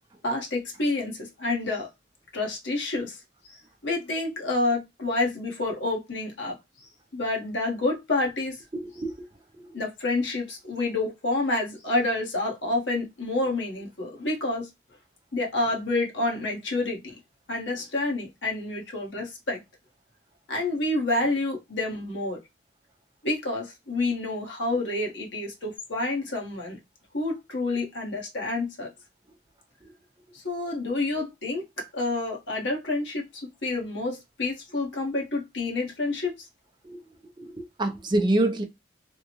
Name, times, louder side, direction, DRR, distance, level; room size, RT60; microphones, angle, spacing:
voice 1, 0.2-1.9 2.3-8.6 9.7-14.7 15.3-17.1 17.5-19.6 20.5-22.4 23.2-26.8 27.1-28.9 30.3-36.5, left 2 dB, 70° left, 1.3 m, -29 dB
voice 2, 8.7-9.3 9.5-9.7 29.8-29.9 36.8-37.0 37.4-38.6, right 1 dB, 25° right, 0.5 m, -27 dB
3.5 x 2.2 x 2.9 m
head